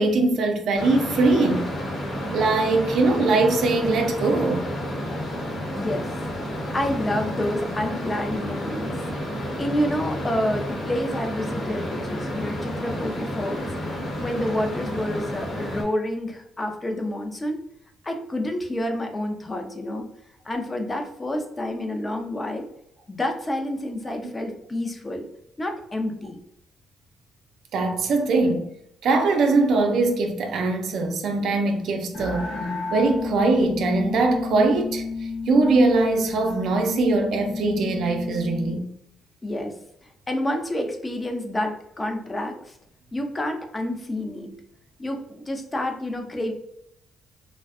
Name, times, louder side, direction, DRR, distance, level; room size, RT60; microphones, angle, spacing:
voice 1, 0.0-1.7 2.3-4.7 27.7-28.7 29.0-32.5 32.9-35.0 35.5-38.9, right 3 dB, 70° right, 0.4 m, -21 dB
sound 1, 0.8-15.8, equal, 50° left, 0.9 m, -31 dB
voice 2, 5.8-6.1 6.7-8.9 9.6-13.7 14.2-17.6 18.0-20.1 20.4-22.7 23.1-25.2 25.6-26.4 39.4-39.7 40.3-42.8 43.1-44.5 45.0-46.5, left 1 dB, 25° left, 0.5 m, -28 dB
sound 2, 32.1-38.8, left 4 dB, 90° left, 0.9 m, -32 dB
2.5 x 2.1 x 2.4 m
cardioid pair, 90°, 0 cm